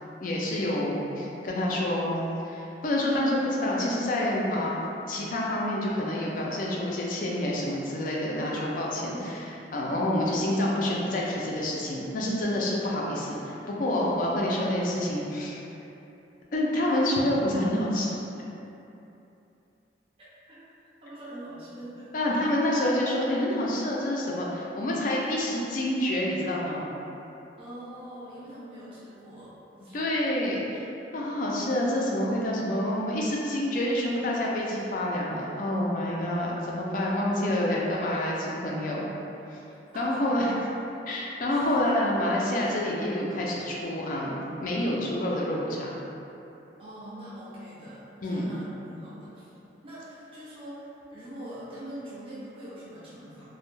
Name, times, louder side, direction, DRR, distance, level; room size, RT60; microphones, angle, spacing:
voice 1, 0.2-4.8 5.1-15.6 16.5-18.2 22.1-26.9 29.9-30.6 31.1-39.1 39.5-39.6 40.0-40.5 41.1-44.3 44.6-45.9 48.2-48.5, left 1 dB, 45° left, -4 dB, 0.3 m, -28 dB
voice 2, 21.0-22.3 27.6-29.9 39.9-40.4 41.5-41.9 46.8-49.5 49.8-53.5, right 1 dB, 30° right, -10 dB, 0.5 m, -43 dB
2.1 x 2.1 x 3.0 m, 2.9 s
head